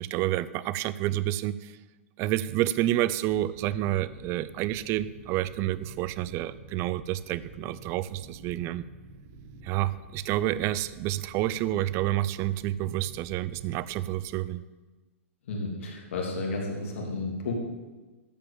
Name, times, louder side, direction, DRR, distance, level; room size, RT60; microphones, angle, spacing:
voice 1, 0.0-1.7 2.2-8.9 9.6-14.6, right 14 dB, 35° right, 17 dB, 0.5 m, -29 dB
sound 1, 3.3-14.2, right 2 dB, 65° right, 2.3 m, -49 dB
voice 2, 15.5-17.5, left 3 dB, 65° left, -1 dB, 3.2 m, -32 dB
13.5 x 5.2 x 7.3 m, 1.2 s
hypercardioid pair, 115°, 7 cm